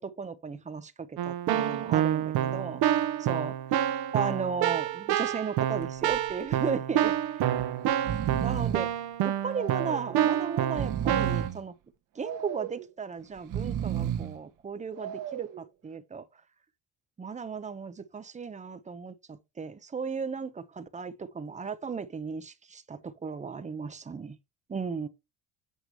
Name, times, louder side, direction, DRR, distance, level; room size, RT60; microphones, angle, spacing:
voice 1, 0.0-2.8 3.2-3.5 4.1-7.5 8.3-8.9 9.2-11.7 12.2-16.2 17.2-24.4 24.7-25.1, right 5 dB, 20° right, 0.8 m, -36 dB
Keyboard (musical), 1.2-11.5, right 11 dB, 70° right, 1.2 m, -28 dB
Breathing, 5.8-6.2 6.5-6.6 7.5-7.7 7.9-8.9 9.5-10.1 10.6-11.6 12.2-12.8 13.4-14.4 15.0-15.6, right 10 dB, 55° right, 1.3 m, -33 dB
8.3 x 4.8 x 4.5 m
cardioid pair, 135°, 38 cm